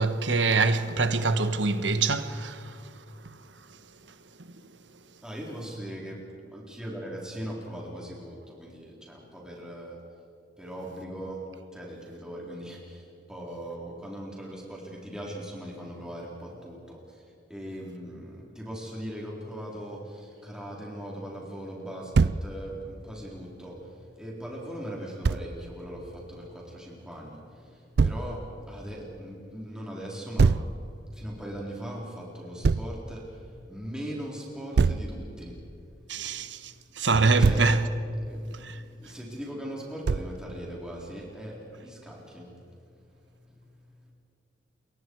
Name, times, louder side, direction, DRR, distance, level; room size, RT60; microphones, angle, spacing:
voice 1, 0.0-2.9 36.1-37.8 38.5-38.8, right 3 dB, 85° right, 1.3 m, -25 dB
voice 2, 5.2-10.0 10.6-17.2 17.5-30.7 31.0-35.6 35.9-37.0 37.4-37.7 38.2-44.1, equal, 5° right, 4.0 m, -40 dB
Thump thud, 22.1-22.4 25.2-25.4 28.0-28.2 30.4-30.7 32.6-32.9 34.8-35.1 37.1-37.7 40.1-40.4, right 4 dB, 60° right, 0.4 m, -22 dB
28.0 x 23.5 x 4.7 m
head